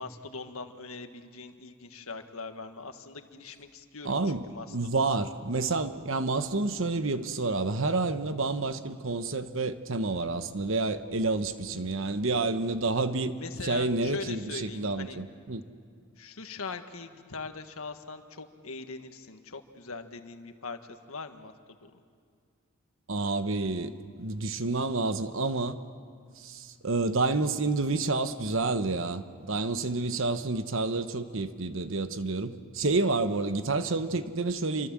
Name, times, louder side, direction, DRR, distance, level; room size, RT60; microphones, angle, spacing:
voice 1, 0.0-5.2 13.4-15.2 16.2-21.5 21.8-21.9, left 4 dB, 85° left, 7 dB, 1.6 m, -41 dB
voice 2, 4.0-4.4 4.7-13.3 13.6-15.6 23.1-25.8 26.4-34.9, right 3 dB, 65° right, 10 dB, 1.1 m, -29 dB
28.5 x 24.0 x 7.5 m, 2.2 s
head